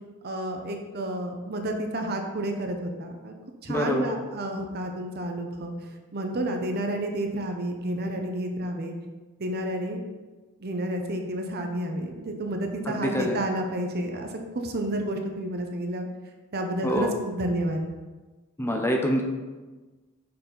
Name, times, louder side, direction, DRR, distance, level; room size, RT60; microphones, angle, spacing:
voice 1, 0.2-3.3 3.6-5.7 6.1-8.9 9.4-10.0 10.6-14.3 14.6-16.1 16.5-17.8, right 1 dB, 50° right, 4 dB, 0.7 m, -30 dB
voice 2, 3.7-4.1 12.9-13.4 16.8-17.1 18.6-19.2, equal, 10° left, 1 dB, 0.6 m, -25 dB
6.6 x 4.3 x 3.8 m, 1.3 s
head